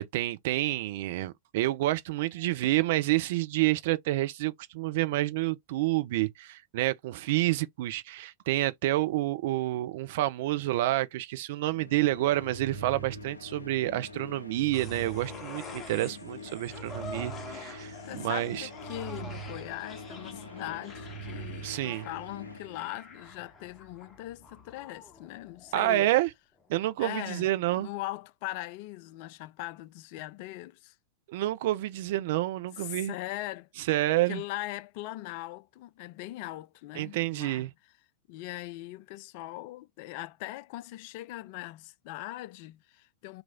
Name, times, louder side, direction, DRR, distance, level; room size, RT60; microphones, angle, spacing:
voice 1, 0.0-18.7 21.6-22.1 25.7-26.3 26.7-27.9 31.3-33.2 33.8-34.4 37.0-37.7, right 16 dB, 50° right, 0.4 m, -29 dB
sound 1, 11.6-23.5, right 1 dB, 85° left, 0.7 m, -43 dB
sound 2, 14.7-26.2 26.6-26.7, left 3 dB, 20° left, 0.8 m, -47 dB
voice 2, 18.1-26.1 27.0-27.5 27.8-30.9 32.8-33.7 34.3-37.7 38.3-43.4, left 17 dB, 45° left, 0.3 m, -40 dB
3.0 x 2.5 x 3.5 m
figure-of-eight pair, 90°, 0 cm